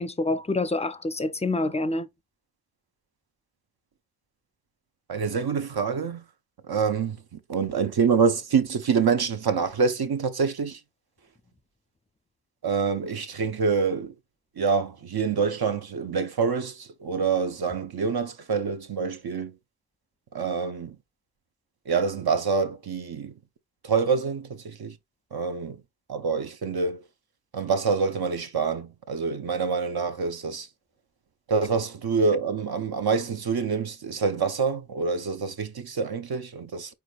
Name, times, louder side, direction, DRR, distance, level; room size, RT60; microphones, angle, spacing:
voice 1, 0.0-2.1, left 2 dB, 15° left, 0.4 m, -27 dB
voice 2, 5.1-6.2 6.6-10.8 12.6-14.2 14.6-19.6 20.3-21.0 21.9-23.4 23.8-25.0 25.3-25.8 26.1-27.0 27.5-30.7 31.5-36.9, right 5 dB, 70° right, 0.8 m, -26 dB
4.8 x 4.6 x 2.4 m
wide cardioid pair, 75°, 39 cm